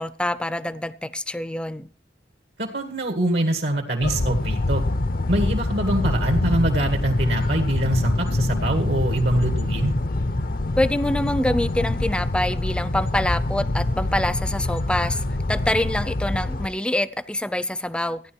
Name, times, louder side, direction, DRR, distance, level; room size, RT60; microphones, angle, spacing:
voice 1, 0.0-1.9 10.8-15.2 15.5-18.2, left 1 dB, 5° left, 0.6 m, -25 dB
voice 2, 2.6-4.8 5.3-9.9, right 1 dB, 75° right, 2.1 m, -24 dB
sound 1, 4.0-16.7, left 2 dB, 50° left, 0.7 m, -25 dB
15.0 x 10.0 x 4.5 m
head